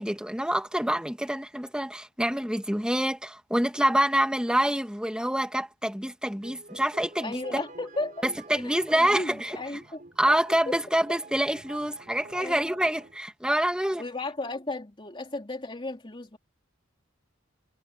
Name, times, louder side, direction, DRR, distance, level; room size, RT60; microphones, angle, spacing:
voice 1, 0.0-7.6 8.2-9.6 10.2-14.0, right 1 dB, 5° right, 2.0 m, -26 dB
sound 1, 6.4-13.2, right 2 dB, 45° right, 4.2 m, -48 dB
voice 2, 7.2-8.2 8.5-10.0 10.7-10.8 11.1-11.2 12.3-12.7 14.0-16.4, left 2 dB, 25° left, 3.2 m, -35 dB
head